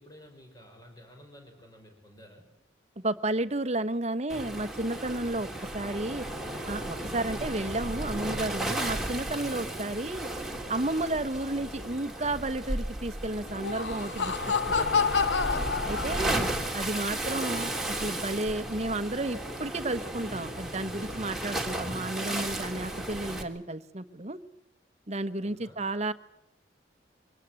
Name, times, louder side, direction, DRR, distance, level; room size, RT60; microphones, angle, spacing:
voice 1, 0.0-2.5 25.4-25.8, equal, 20° left, 3 dB, 6.0 m, -53 dB
voice 2, 3.0-5.5 5.7-6.3 6.6-10.3 10.7-15.2 15.9-24.4 25.1-26.1, right 2 dB, 35° right, 12 dB, 1.2 m, -32 dB
Waves surf, 4.3-23.4, right 1 dB, ahead, 3.1 m, -34 dB
Laughter, 13.5-16.6, left 5 dB, 80° left, 1.1 m, -28 dB
24.5 x 19.0 x 7.8 m, 0.83 s
head